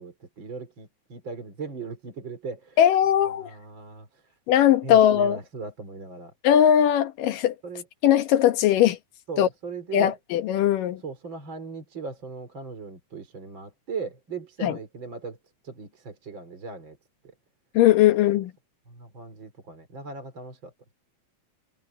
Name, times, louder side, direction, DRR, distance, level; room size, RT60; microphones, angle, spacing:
voice 1, 0.0-2.8 3.4-4.1 4.8-6.3 7.6-7.8 9.3-10.1 11.0-15.4 15.6-17.0 18.1-18.2 18.9-20.7, right 4 dB, 35° right, 4.4 m, -38 dB
voice 2, 2.8-3.5 4.5-5.4 6.4-7.6 8.0-9.0 9.4-9.5 9.9-11.0 14.6-14.8 17.7-18.5, left 11 dB, 80° left, 2.9 m, -19 dB
omnidirectional pair, 3.8 m